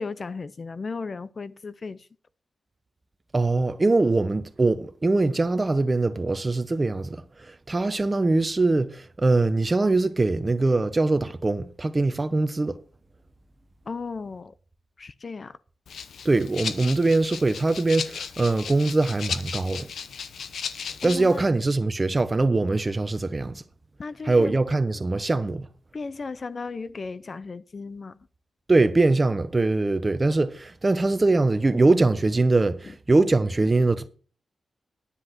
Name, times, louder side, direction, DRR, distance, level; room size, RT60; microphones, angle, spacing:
voice 1, 0.0-2.1 13.9-14.5 15.0-15.6 21.0-21.4 24.0-24.5 25.9-28.2, left 4 dB, 40° left, 0.5 m, -35 dB
voice 2, 3.3-7.2 7.5-12.8 16.2-19.9 21.0-23.6 24.2-25.7 28.7-34.1, right 2 dB, 25° right, 1.0 m, -22 dB
Rattle (instrument), 15.9-21.4, left 6 dB, 85° left, 0.8 m, -35 dB
10.5 x 9.9 x 4.4 m
wide cardioid pair, 105°, 0 cm